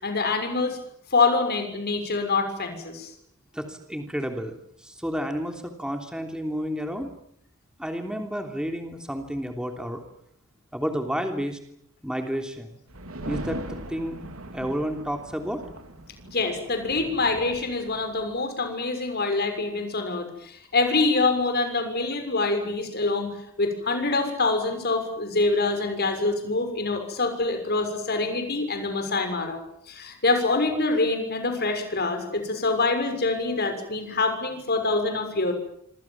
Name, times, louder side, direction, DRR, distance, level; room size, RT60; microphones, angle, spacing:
voice 1, 0.0-0.8 1.1-3.1 16.3-29.6 29.9-35.5, left 3 dB, 50° left, 6 dB, 6.5 m, -25 dB
voice 2, 3.5-4.5 4.8-7.1 7.8-10.0 10.7-11.6 12.0-12.7 13.2-14.2 14.5-15.6, equal, 5° right, 4 dB, 3.2 m, -31 dB
sound 1, 12.9-18.4, right 1 dB, 80° right, 3.8 m, -40 dB
27.5 x 26.0 x 7.4 m, 0.70 s
head